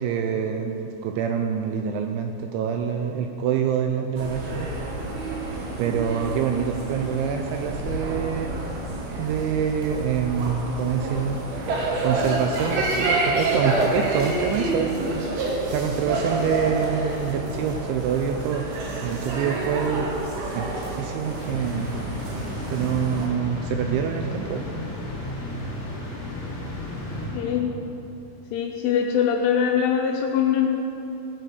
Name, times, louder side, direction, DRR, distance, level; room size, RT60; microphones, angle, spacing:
voice 1, 0.0-4.7 5.8-8.5 9.2-11.4 12.0-18.7 19.0-20.2 20.5-21.9 22.7-24.7, right 7 dB, 85° right, 4 dB, 2.7 m, -26 dB
sound 1, 4.2-23.3, right 2 dB, 60° right, 2.9 m, -29 dB
sound 2, 21.2-27.9, left 1 dB, 35° left, 1.5 m, -33 dB
voice 2, 27.3-27.7 28.5-30.7, left 8 dB, 80° left, 2 dB, 2.9 m, -22 dB
15.5 x 8.6 x 6.8 m, 2.9 s
omnidirectional pair, 6.0 m